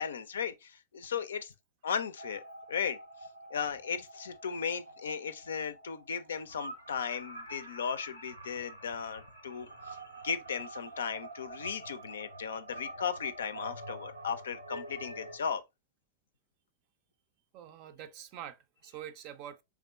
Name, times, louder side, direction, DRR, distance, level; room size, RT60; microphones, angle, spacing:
voice 1, 0.0-1.5 1.8-2.4 2.7-3.0 3.5-15.6, left 7 dB, 65° left, 0.4 m, -36 dB
sound 1, 2.2-15.4, right 2 dB, 85° right, 0.7 m, -47 dB
voice 2, 17.5-19.6, right 10 dB, 45° right, 0.5 m, -46 dB
3.5 x 3.5 x 2.3 m
figure-of-eight pair, 90°, 0 cm